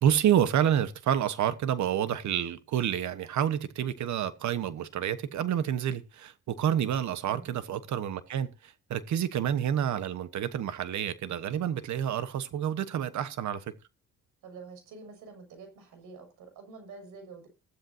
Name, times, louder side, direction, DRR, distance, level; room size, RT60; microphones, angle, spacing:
voice 1, 0.0-13.7, right 9 dB, 70° right, 1.3 m, -29 dB
voice 2, 7.2-7.5 14.4-17.5, right 4 dB, 85° right, 6.2 m, -47 dB
15.0 x 13.0 x 2.8 m
cardioid pair, 90°, 30 cm